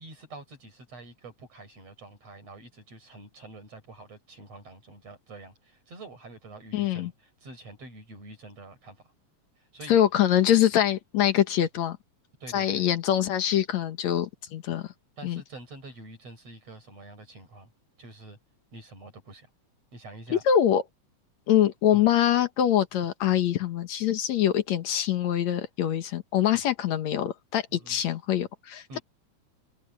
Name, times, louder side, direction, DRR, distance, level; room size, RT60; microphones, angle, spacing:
voice 1, 0.0-9.0 9.7-10.0 12.4-12.9 15.2-17.7 18.0-18.4 18.7-19.5 19.9-20.4 21.9-22.0 27.7-28.0 28.9-29.0, right 2 dB, 60° right, 7.5 m, -46 dB
voice 2, 6.7-7.1 9.9-12.0 12.5-14.9 15.2-15.4 20.3-20.8 21.5-29.0, left 10 dB, 70° left, 2.5 m, -24 dB
omnidirectional pair, 3.3 m